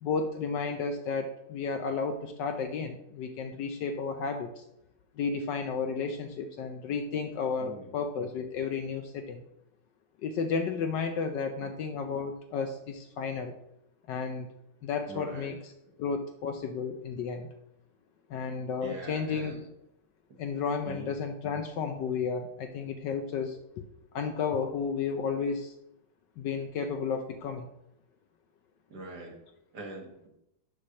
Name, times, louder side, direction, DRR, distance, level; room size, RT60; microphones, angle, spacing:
voice 1, 0.0-4.5 5.2-9.4 10.2-13.5 14.1-14.5 14.8-15.5 16.0-17.5 18.3-19.6 20.4-23.6 24.1-25.7 26.4-27.7, left 5 dB, 70° left, 6 dB, 1.1 m, -32 dB
voice 2, 7.6-8.0 11.6-11.7 15.1-15.5 18.8-19.6 20.8-21.1 28.9-29.3 29.7-30.3, right 2 dB, 50° right, 0 dB, 1.9 m, -42 dB
8.4 x 3.2 x 6.2 m, 0.82 s
omnidirectional pair, 2.4 m